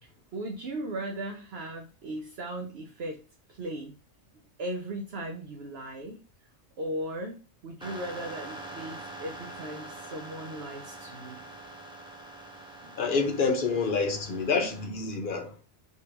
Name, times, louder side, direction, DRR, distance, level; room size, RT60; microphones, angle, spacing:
voice 1, 0.0-3.2 3.5-3.9 4.6-6.2 6.8-7.3 7.6-11.4 12.8-13.0, right 1 dB, 60° right, 0.9 m, -37 dB
sound 1, 7.8-14.9, right 2 dB, 5° right, 0.7 m, -44 dB
voice 2, 13.0-15.5, left 4 dB, 50° left, 1.0 m, -27 dB
5.1 x 3.4 x 2.9 m
omnidirectional pair, 1.3 m